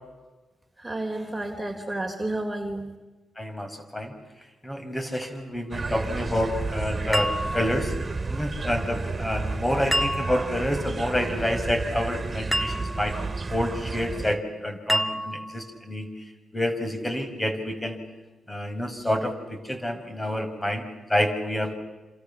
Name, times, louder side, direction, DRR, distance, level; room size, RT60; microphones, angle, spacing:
voice 1, 0.8-2.9, right 2 dB, 15° right, 3 dB, 3.8 m, -31 dB
voice 2, 3.4-4.1 4.6-7.9 8.3-13.2 13.5-16.2 16.5-18.0 18.5-21.7, left 1 dB, 20° left, 7 dB, 6.0 m, -28 dB
sound 1, 5.7-14.4, right 3 dB, 35° right, 3.0 m, -32 dB
sound 2, 7.1-8.1 9.9-10.7 12.5-13.2 14.9-15.7, equal, 5° left, 2.1 m, -28 dB
28.0 x 27.5 x 7.2 m, 1.1 s
supercardioid pair, 50°, 0 cm